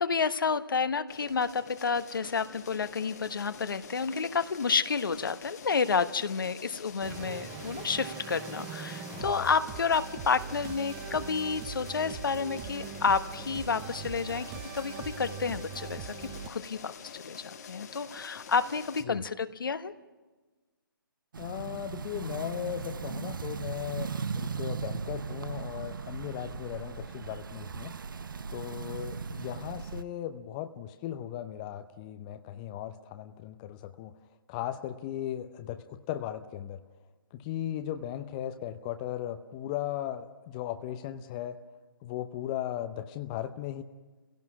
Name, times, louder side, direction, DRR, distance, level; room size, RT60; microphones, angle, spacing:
voice 1, 0.0-16.9 17.2-19.9, left 5 dB, 70° left, 11 dB, 1.2 m, -30 dB
sound 1, 1.1-19.0, left 6 dB, 45° left, 1.5 m, -47 dB
sound 2, 7.0-16.5, right 8 dB, 15° right, 0.7 m, -42 dB
voice 2, 9.1-9.5 19.0-19.2 21.4-27.9 28.5-34.1 34.5-36.8 37.3-41.6 42.0-43.8, left 12 dB, 20° left, 8 dB, 0.7 m, -37 dB
sound 3, 21.3-30.0, right 5 dB, 65° right, 0.8 m, -37 dB
28.0 x 17.0 x 6.1 m, 1.3 s
hypercardioid pair, 155°, 12 cm